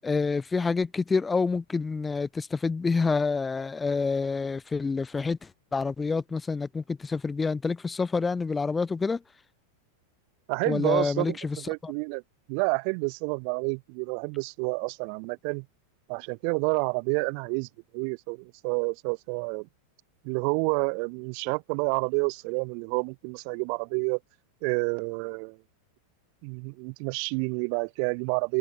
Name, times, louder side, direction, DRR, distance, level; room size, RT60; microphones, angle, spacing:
voice 1, 0.0-9.2 10.7-11.6 11.8-11.9, left 4 dB, 15° left, 4.4 m, -27 dB
voice 2, 10.5-12.2 12.5-15.6 16.1-17.7 17.9-19.7 20.2-24.2 24.6-25.6 26.4-28.6, right 40 dB or more, 45° right, 5.0 m, -29 dB
figure-of-eight pair, 90°, 0 cm